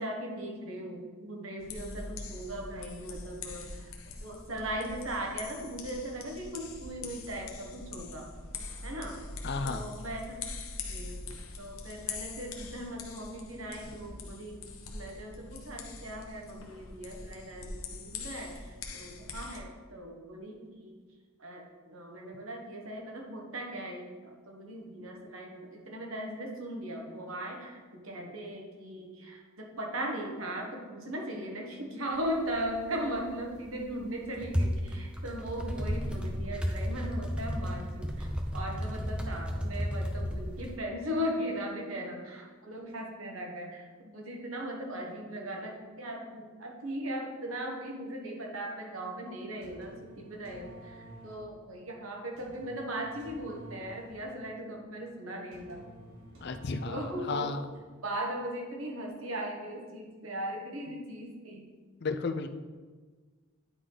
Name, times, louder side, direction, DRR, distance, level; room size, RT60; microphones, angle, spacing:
voice 1, 0.0-3.9 4.2-8.3 8.8-9.2 9.6-10.5 10.8-21.0 21.4-38.3 38.5-55.9 56.9-57.6 58.0-61.7, right 1 dB, 85° right, 0 dB, 1.4 m, -38 dB
sound 1, 1.6-19.6, left 3 dB, 85° left, 0.9 m, -43 dB
voice 2, 9.4-9.9 56.4-57.7 62.0-62.5, left 4 dB, 55° left, 9 dB, 0.5 m, -33 dB
sound 2, 32.1-32.2 32.5-33.0 33.5-40.8, equal, 5° right, 0.6 m, -33 dB
sound 3, 49.4-57.6, right 1 dB, 70° right, 2.4 m, -51 dB
9.7 x 4.8 x 4.0 m, 1.4 s
head